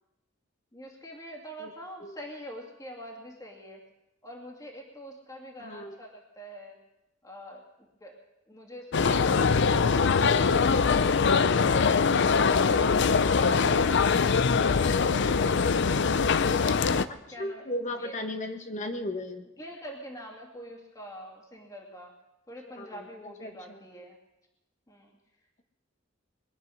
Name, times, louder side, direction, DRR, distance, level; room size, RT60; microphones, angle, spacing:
voice 1, 0.7-3.8 4.2-6.8 7.2-8.2 8.5-9.3 9.7-11.0 11.4-11.7 12.1-16.1 16.8-18.2 19.6-22.1 22.5-24.2 24.9-25.1, equal, 15° left, 0 dB, 2.4 m, -45 dB
voice 2, 5.6-6.0 9.2-9.4 17.1-19.5 22.8-23.0 23.4-23.8, left 1 dB, 40° left, 6 dB, 1.3 m, -36 dB
sound 1, 8.9-17.1, left 5 dB, 60° left, 0.6 m, -23 dB
22.0 x 10.5 x 6.3 m, 0.95 s
head